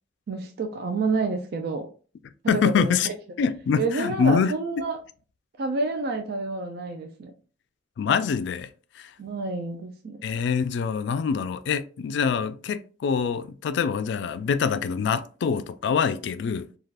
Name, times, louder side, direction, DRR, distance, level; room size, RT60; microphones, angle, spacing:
voice 1, 0.3-1.9 2.4-3.1 3.8-5.0 5.6-7.3 9.2-10.2, right 3 dB, 60° right, 0.4 m, -29 dB
voice 2, 2.5-3.1 3.4-4.5 8.0-8.7 8.9-9.1 10.2-16.7, left 6 dB, 70° left, 0.3 m, -25 dB
3.3 x 2.3 x 2.3 m
head